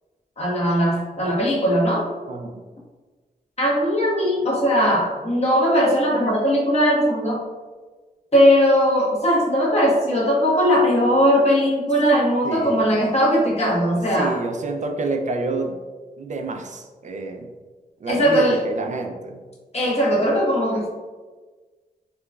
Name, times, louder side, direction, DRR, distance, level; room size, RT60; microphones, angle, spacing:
voice 1, 0.4-2.0 3.6-7.4 8.3-14.4 18.1-18.6 19.7-20.9, equal, 40° left, -5 dB, 1.1 m, -19 dB
voice 2, 12.4-13.0 13.9-15.8 16.2-17.5 18.0-19.4, right 3 dB, 50° right, 3 dB, 0.4 m, -29 dB
3.0 x 2.2 x 2.3 m, 1.3 s
cardioid pair, 45°, 16 cm